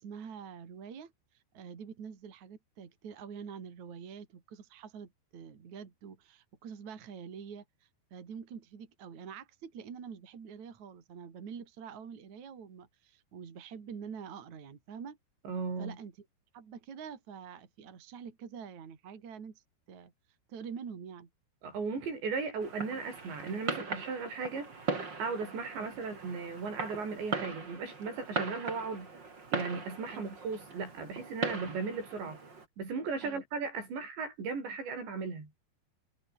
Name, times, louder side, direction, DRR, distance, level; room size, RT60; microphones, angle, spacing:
voice 1, 0.0-15.2 15.8-16.1 16.5-20.1 20.5-21.3 25.8-26.0 30.0-30.2 33.2-33.4, right 7 dB, 45° right, 4.2 m, -46 dB
voice 2, 15.4-16.0 21.6-24.7 25.2-29.1 29.5-32.4 32.8-35.5, right 4 dB, 80° right, 10.0 m, -36 dB
Fireworks, 22.6-32.7, right 4 dB, 25° right, 3.9 m, -39 dB
omnidirectional pair, 5.0 m